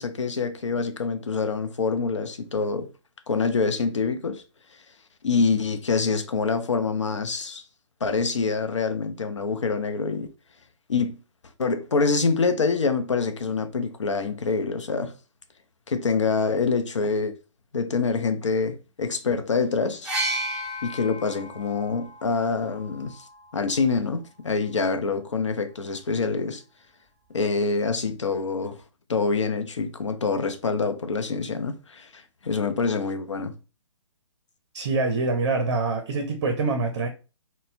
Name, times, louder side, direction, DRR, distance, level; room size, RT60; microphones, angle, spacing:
voice 1, 0.0-2.9 3.3-4.4 5.2-7.6 8.0-10.3 10.9-11.2 11.6-15.1 15.9-17.3 17.7-20.1 20.8-23.2 23.5-26.6 27.3-28.8 29.1-33.5, left 4 dB, 75° left, 0.5 m, -26 dB
sound 1, 20.0-23.9 24.9-25.0, right 1 dB, 5° right, 0.7 m, -34 dB
voice 2, 34.7-37.1, right 3 dB, 45° right, 0.6 m, -25 dB
3.9 x 2.1 x 2.6 m
figure-of-eight pair, 130°, 16 cm